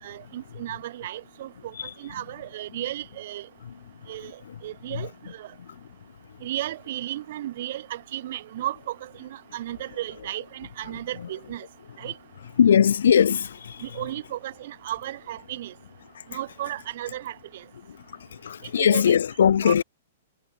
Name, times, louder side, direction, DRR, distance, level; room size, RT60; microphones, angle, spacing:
voice 1, 0.0-3.5 4.1-4.3 4.6-5.5 6.4-11.7 12.0-12.1 13.8-15.7 16.3-17.6 18.8-19.1 19.6-19.8, right 13 dB, 55° right, 5.6 m, -34 dB
voice 2, 12.6-13.5 18.4-19.8, left 8 dB, 80° left, 1.4 m, -19 dB
hypercardioid pair, 155°, 0 cm